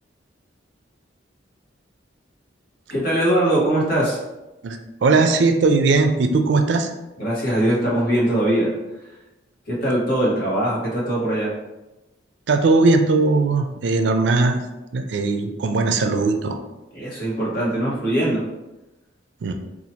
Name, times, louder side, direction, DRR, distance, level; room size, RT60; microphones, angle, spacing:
voice 1, 2.9-4.2 7.2-8.7 9.7-11.5 16.9-18.4, right 1 dB, 50° left, -6 dB, 1.2 m, -21 dB
voice 2, 4.6-6.9 12.5-14.6 14.9-16.6 19.4-19.5, right 3 dB, 70° right, 6 dB, 0.4 m, -19 dB
2.8 x 2.4 x 4.2 m, 1.0 s
head